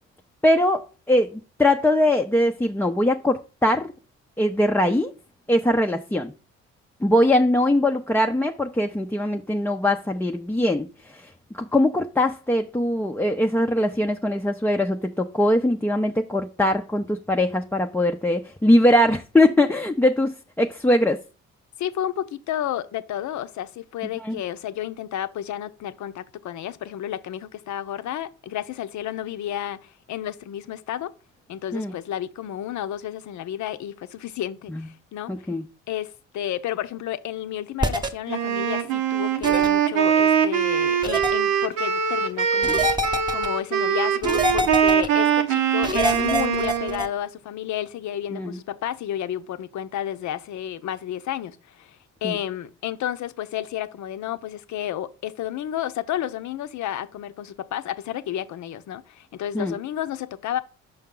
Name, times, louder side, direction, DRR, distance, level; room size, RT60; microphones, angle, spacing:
voice 1, 0.4-3.9 4.4-5.1 5.5-6.3 7.0-21.2 24.2-24.4 31.7-31.9 34.7-34.8 35.3-35.6 48.3-48.6 52.2-52.4 59.5-59.7, left 1 dB, 5° left, 0.5 m, -21 dB
voice 2, 21.8-31.1 31.5-35.3 35.9-60.6, left 11 dB, 65° left, 0.7 m, -31 dB
sound 1, 37.8-38.1 39.4-39.7 41.0-41.3 42.6-43.5 44.2-45.1 45.8-47.1, right 1 dB, 15° right, 1.0 m, -25 dB
Wind instrument woodwind instrument, 38.3-47.1, right 8 dB, 85° right, 0.9 m, -22 dB
5.6 x 5.5 x 3.8 m
supercardioid pair, 60°, 32 cm